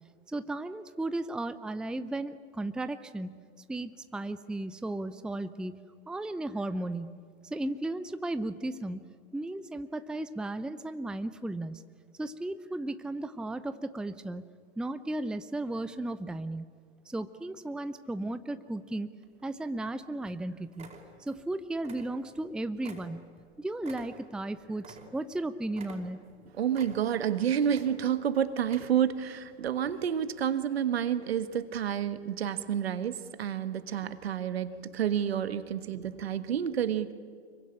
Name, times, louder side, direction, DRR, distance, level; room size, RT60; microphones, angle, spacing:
voice 1, 0.3-3.4 3.7-5.8 6.1-7.1 7.4-11.8 12.2-14.5 14.8-16.7 17.1-19.1 19.4-20.9 21.2-23.2 23.6-26.3, right 2 dB, ahead, 12 dB, 0.7 m, -35 dB
sound 1, 19.2-19.9 20.2-20.4 20.7-21.5 21.8-22.5 22.8-25.4 25.7-26.4 26.7-27.3 27.6-28.2 28.6-29.2 29.6-29.7, right 3 dB, 20° right, 4.6 m, -50 dB
voice 2, 26.5-37.1, right 9 dB, 65° right, 12 dB, 1.6 m, -29 dB
25.5 x 23.0 x 10.0 m, 2.1 s
figure-of-eight pair, 95°, 33 cm